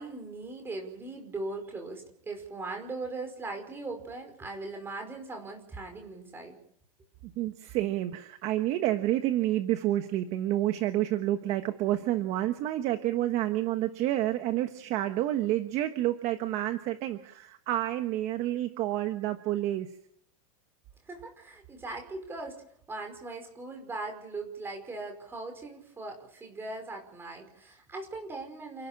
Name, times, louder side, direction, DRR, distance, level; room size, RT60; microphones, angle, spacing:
voice 1, 0.0-6.6 21.1-22.6 22.9-28.9, right 3 dB, 10° right, 4 dB, 5.3 m, -39 dB
voice 2, 7.4-19.9, right 14 dB, 35° right, 8 dB, 1.3 m, -29 dB
29.0 x 11.5 x 8.7 m, 0.70 s
supercardioid pair, 160°, 19 cm